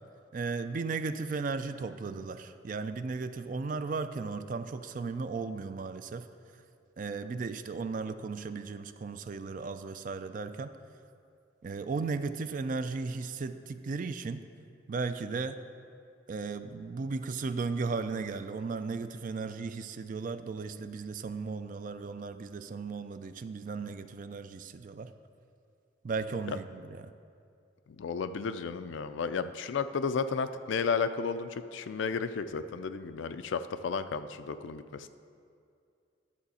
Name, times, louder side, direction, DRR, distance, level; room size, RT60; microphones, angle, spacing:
voice 1, 0.3-6.3 7.0-10.7 11.6-14.4 14.9-15.6 16.3-25.1 26.0-27.1, right 4 dB, 40° right, 10 dB, 0.3 m, -35 dB
voice 2, 28.0-35.1, left 5 dB, 70° left, 11 dB, 0.4 m, -33 dB
10.5 x 7.1 x 4.2 m, 2.4 s
head